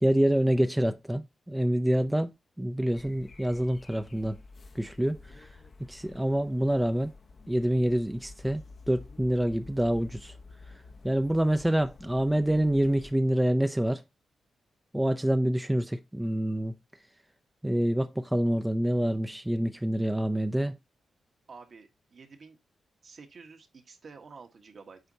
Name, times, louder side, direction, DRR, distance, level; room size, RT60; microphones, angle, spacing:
voice 1, 0.0-2.3 2.6-4.4 4.7-5.5 5.9-7.1 7.5-10.3 11.0-14.0 14.9-16.8 17.6-20.8, right 1 dB, 10° right, 0.5 m, -26 dB
sound 1, 2.9-13.1, left 3 dB, 45° left, 0.8 m, -50 dB
voice 2, 21.5-22.6 23.0-25.0, right 4 dB, 55° right, 1.3 m, -50 dB
8.0 x 4.3 x 2.7 m
cardioid pair, 80°, 0 cm